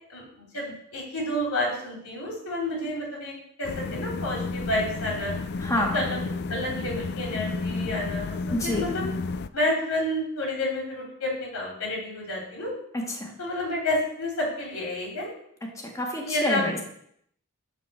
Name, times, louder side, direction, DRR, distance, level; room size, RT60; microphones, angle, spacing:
voice 1, 0.1-5.4 5.9-8.4 8.6-9.1 9.5-12.7 13.4-15.3 16.2-16.6, left 1 dB, 85° left, -2 dB, 3.5 m, -30 dB
sound 1, 3.6-9.5, left 3 dB, 45° left, 0.4 m, -32 dB
voice 2, 5.6-6.0 8.5-8.9 12.9-13.3 15.7-16.8, left 1 dB, 15° left, 1 dB, 1.5 m, -28 dB
9.5 x 4.3 x 6.9 m, 0.70 s
head